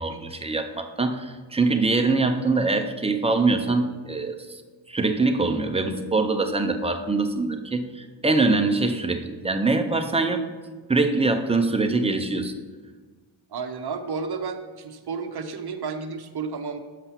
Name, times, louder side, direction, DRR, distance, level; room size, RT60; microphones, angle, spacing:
voice 1, 0.0-4.6 4.9-10.4 10.9-12.5, right 3 dB, 15° right, 6 dB, 0.4 m, -23 dB
voice 2, 13.5-16.8, right 5 dB, 55° right, 6 dB, 0.8 m, -32 dB
7.3 x 5.7 x 5.6 m, 1.4 s
wide cardioid pair, 150°, 48 cm